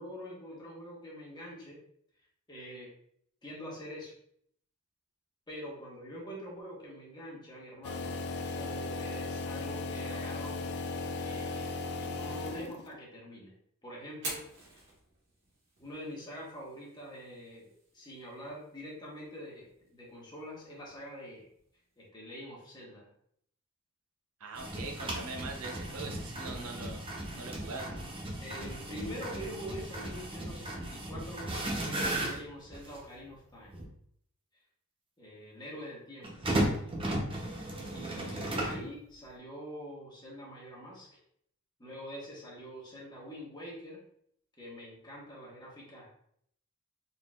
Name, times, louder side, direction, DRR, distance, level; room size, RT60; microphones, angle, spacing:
voice 1, 0.0-1.8 2.5-2.9 3.4-4.1 5.5-10.6 11.2-13.5 13.8-14.4 14.7-14.8 15.8-21.5 22.0-23.1 27.6-28.0 28.4-33.8 35.2-36.5 37.9-41.2 41.8-44.0 44.6-46.1, equal, 20° left, -4 dB, 1.3 m, -45 dB
sound 1, 7.8-13.0, left 3 dB, 50° left, 0.4 m, -36 dB
Fire, 14.1-22.1, right 2 dB, 60° right, 1.7 m, -49 dB
voice 2, 24.4-27.0 27.3-27.9, right 3 dB, 85° right, 2 dB, 0.7 m, -42 dB
sound 2, 24.6-33.1 33.7-33.8 36.2-38.9, right 1 dB, 25° right, 0.7 m, -35 dB
4.1 x 3.8 x 2.3 m, 0.66 s
head